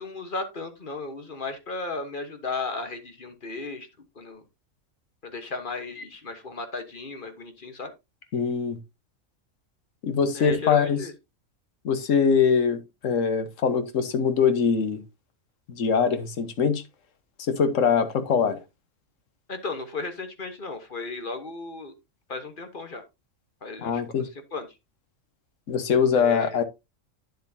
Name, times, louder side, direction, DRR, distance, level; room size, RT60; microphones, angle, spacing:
voice 1, 0.0-3.9 4.2-4.4 5.2-7.9 10.3-11.1 19.5-21.9 22.3-23.0 23.6-24.0 24.5-24.7 26.1-26.5, left 3 dB, 40° left, 1.4 m, -35 dB
voice 2, 8.3-8.8 10.0-11.0 11.8-15.0 15.7-16.8 17.4-18.6 23.8-24.3 25.7-26.6, left 6 dB, 70° left, 1.4 m, -23 dB
9.4 x 7.8 x 2.8 m
omnidirectional pair, 1.4 m